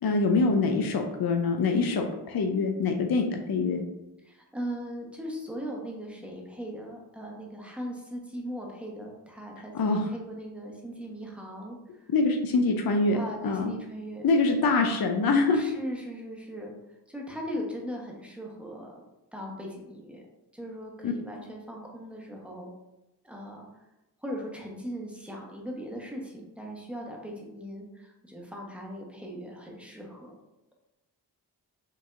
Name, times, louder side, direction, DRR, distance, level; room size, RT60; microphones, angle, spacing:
voice 1, 0.0-3.8 9.7-10.0 12.1-13.7 14.2-15.6 21.0-21.1, left 3 dB, 60° left, 4 dB, 0.5 m, -25 dB
voice 2, 4.2-12.1 13.1-14.3 15.5-16.7 17.1-19.0 19.3-20.2 20.5-22.7 23.2-23.7 24.2-30.3, equal, 5° right, -1 dB, 1.0 m, -39 dB
4.5 x 2.7 x 2.5 m, 0.94 s
cardioid pair, 40°, 41 cm